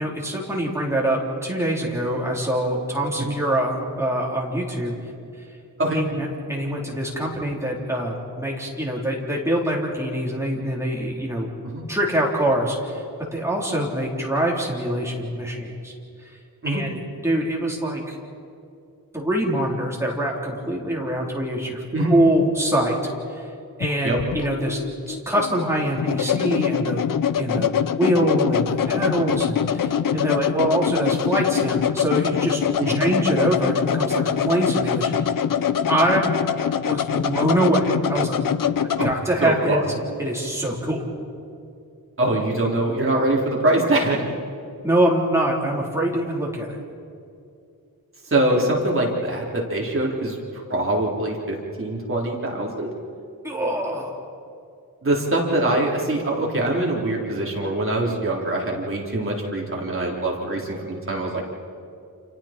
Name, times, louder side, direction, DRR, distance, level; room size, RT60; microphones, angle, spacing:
voice 1, 0.0-4.9 5.9-11.5 11.9-13.0 13.3-15.9 16.2-16.3 16.6-17.0 17.2-18.2 19.1-21.8 22.1-23.0 23.3-23.5 23.8-24.8 25.1-27.1 27.4-27.7 28.0-32.6 32.9-35.2 35.9-36.3 36.8-38.4 39.0-39.8 40.2-41.1 44.8-46.8 53.4-54.1, right 1 dB, 5° right, -3 dB, 3.7 m, -24 dB
sound 1, 23.8-39.1, left 8 dB, 60° left, 0.7 m, -24 dB
voice 2, 39.4-39.9 42.2-44.2 48.3-52.9 55.0-61.4, right 1 dB, 35° right, -3 dB, 3.6 m, -23 dB
29.5 x 28.0 x 4.5 m, 2.5 s
wide cardioid pair, 170°, 37 cm